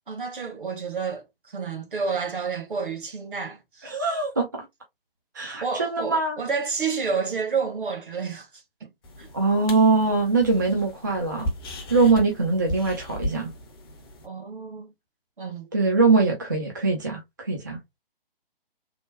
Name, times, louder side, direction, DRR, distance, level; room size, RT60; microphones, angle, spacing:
voice 1, 0.1-3.9 5.6-8.9 9.2-9.3 14.2-14.9 15.4-15.7, right 5 dB, 60° right, 1.1 m, -30 dB
voice 2, 3.8-4.7 5.3-6.4 9.3-11.5 11.9-13.5 15.7-17.8, right 3 dB, 20° right, 0.4 m, -22 dB
sound 1, 9.0-14.3, left 1 dB, 25° left, 0.6 m, -36 dB
3.2 x 2.1 x 3.2 m
figure-of-eight pair, 140°, 29 cm